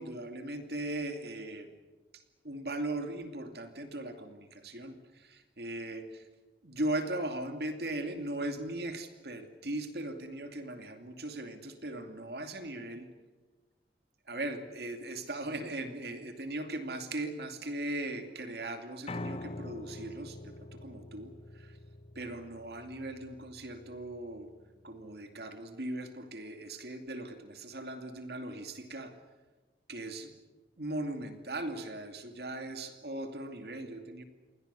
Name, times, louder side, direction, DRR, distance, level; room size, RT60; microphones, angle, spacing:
voice 1, 0.0-1.7 2.1-6.3 6.6-13.1 14.3-21.8 22.2-24.5 24.8-29.1 29.9-30.3 30.8-34.2, right 1 dB, 60° right, 6 dB, 2.6 m, -39 dB
Piano, 19.1-25.2, left 2 dB, 35° left, 0.7 m, -45 dB
29.5 x 21.5 x 7.0 m, 1.2 s
head